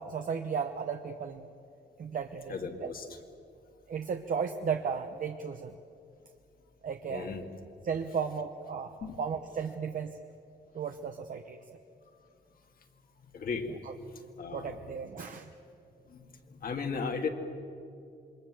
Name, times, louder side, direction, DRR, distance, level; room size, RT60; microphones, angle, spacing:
voice 1, 0.0-1.5 2.0-2.9 3.9-5.8 6.8-7.3 7.8-10.2 10.7-11.8 13.8-13.9 14.5-15.5, right 6 dB, 50° right, 5 dB, 0.9 m, -35 dB
voice 2, 2.5-3.1 7.1-7.4 9.0-9.2 13.3-14.8 16.1-17.3, left 5 dB, 55° left, 4 dB, 2.1 m, -36 dB
27.0 x 22.5 x 7.6 m, 2.6 s
wide cardioid pair, 160°, 18 cm